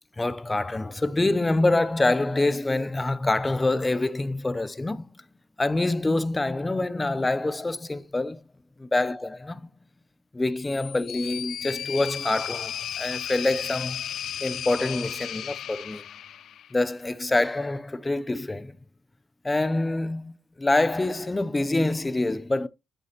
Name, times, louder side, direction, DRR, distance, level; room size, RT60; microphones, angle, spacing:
voice 1, 0.2-5.1 5.6-8.4 8.8-9.6 10.3-14.0 14.4-16.0 16.7-18.8 19.4-22.7, left 2 dB, 15° left, 0.6 m, -26 dB
sound 1, 10.6-16.8, left 10 dB, 70° left, 0.3 m, -35 dB
8.1 x 8.0 x 2.8 m
cardioid pair, 90°, 0 cm